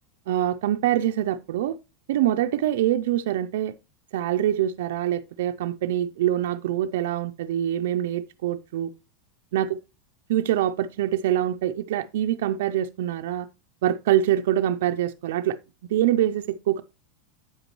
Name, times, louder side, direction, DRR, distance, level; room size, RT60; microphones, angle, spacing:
voice 1, 0.3-1.8 2.1-3.7 4.1-8.9 9.5-9.7 10.3-13.5 13.8-15.6 15.9-16.8, right 12 dB, 65° right, 0.4 m, -24 dB
8.8 x 8.1 x 3.0 m
supercardioid pair, 180°, 0 cm